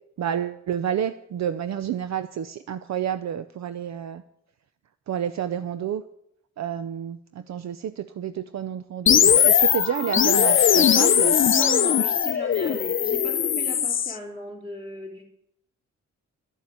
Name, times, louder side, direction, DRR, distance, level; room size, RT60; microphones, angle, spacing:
voice 1, 0.2-4.2 5.1-6.0 6.6-11.4, right 9 dB, 60° right, 12 dB, 0.6 m, -29 dB
sound 1, 9.1-14.1, left 8 dB, 40° left, 0.6 m, -20 dB
voice 2, 11.4-15.3, right 1 dB, 15° right, 0 dB, 3.2 m, -36 dB
12.0 x 7.1 x 9.2 m, 0.76 s
wide cardioid pair, 125°, 30 cm